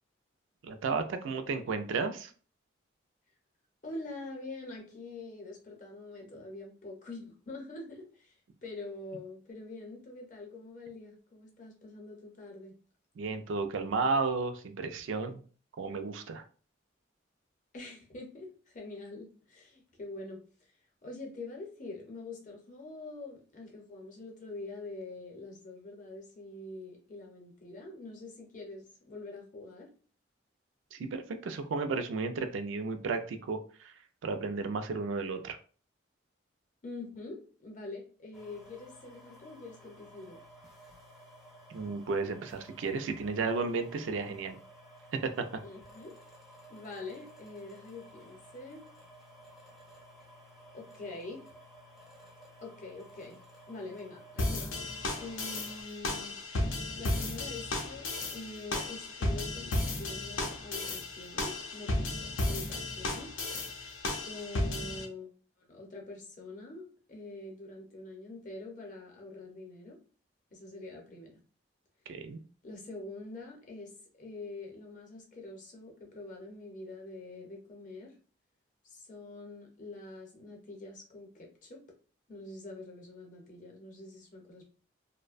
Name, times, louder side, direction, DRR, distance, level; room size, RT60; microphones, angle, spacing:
voice 1, 0.6-2.3 13.2-15.4 15.8-16.4 30.9-33.9 34.2-35.6 41.7-44.6 45.2-45.3 72.1-72.4, right 4 dB, 75° right, 7 dB, 0.4 m, -33 dB
voice 2, 3.8-8.3 8.6-12.8 17.7-20.4 21.0-29.9 36.8-40.4 45.6-46.1 46.7-48.8 50.7-51.4 52.6-53.4 53.7-54.9 55.2-56.4 57.0-63.3 64.2-65.3 65.6-70.0 70.5-71.4 72.6-73.9 74.2-78.1 78.9-81.8 82.3-84.7, left 2 dB, 40° left, 0 dB, 0.6 m, -45 dB
sound 1, 38.3-55.8, equal, ahead, 0.4 m, -55 dB
sound 2, 54.4-65.1, left 2 dB, 90° left, 0.5 m, -34 dB
2.5 x 2.1 x 2.4 m, 0.40 s
head